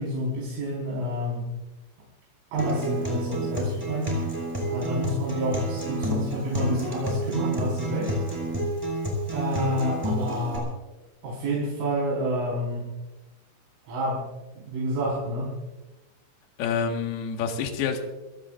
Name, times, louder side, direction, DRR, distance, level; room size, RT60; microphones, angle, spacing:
voice 1, 0.0-1.5 2.5-4.2 4.7-8.1 9.3-10.7 11.2-12.9 13.8-14.3 14.7-15.5, equal, 85° right, -6 dB, 7.4 m, -28 dB
Acoustic guitar, 2.6-10.6, equal, 5° right, 5.4 m, -30 dB
voice 2, 16.6-18.0, left 6 dB, 65° left, 3 dB, 3.4 m, -27 dB
28.0 x 17.5 x 2.6 m, 1.1 s
omnidirectional pair, 5.4 m